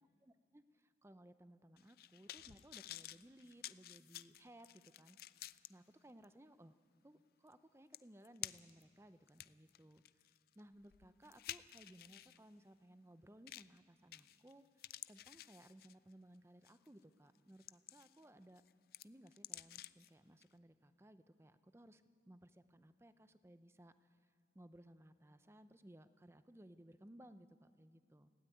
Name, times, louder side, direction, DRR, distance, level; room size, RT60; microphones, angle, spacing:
voice 1, 0.0-5.4 5.7-6.8 7.0-10.0 10.5-18.6 19.0-28.3, right 1 dB, 15° right, 12 dB, 0.6 m, -61 dB
sound 1, 1.8-5.7 6.2-6.3 7.5-7.6 7.9-8.8 9.3-12.4 13.5-13.8 14.1-14.5 14.8-16.1 16.6-16.9 17.3-18.2 18.6-20.1 20.4-20.5, left 14 dB, 55° left, 0.4 m, -52 dB
20.0 x 16.5 x 9.1 m, 2.6 s
head